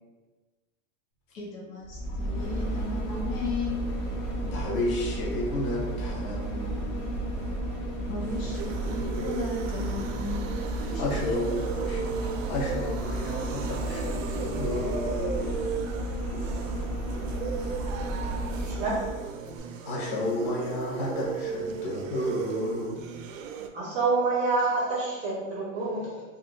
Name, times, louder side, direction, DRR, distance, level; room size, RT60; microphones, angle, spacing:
voice 1, 1.3-3.8 8.0-10.5 10.9-11.0, left 3 dB, 85° left, -3 dB, 1.1 m, -35 dB
sound 1, 1.8-19.2 19.6-19.7, right 1 dB, 50° left, 1.1 m, -32 dB
voice 2, 4.4-7.2 11.0-12.2 12.5-15.6 19.8-23.0, left 1 dB, 30° left, -3 dB, 0.5 m, -32 dB
sound 2, 8.0-23.7, right 6 dB, 80° right, 0.5 m, -36 dB
voice 3, 18.6-19.0 23.7-26.2, right 3 dB, 20° right, -5 dB, 0.5 m, -27 dB
2.6 x 2.3 x 3.8 m, 1.3 s
supercardioid pair, 170°, 39 cm